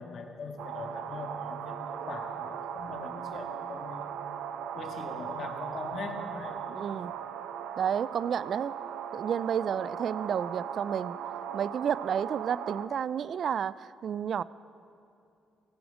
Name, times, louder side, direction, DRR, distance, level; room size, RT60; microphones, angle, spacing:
voice 1, 0.0-4.1 4.7-6.6, left 4 dB, 60° left, 3 dB, 1.7 m, -41 dB
sound 1, 0.6-12.9, right 8 dB, 85° right, 0.7 m, -38 dB
voice 2, 6.7-7.1 7.8-8.8 9.1-11.2 11.5-14.4, right 8 dB, 60° right, 18 dB, 0.3 m, -31 dB
17.0 x 15.5 x 5.0 m, 2.7 s
cardioid pair, 90°, 0 cm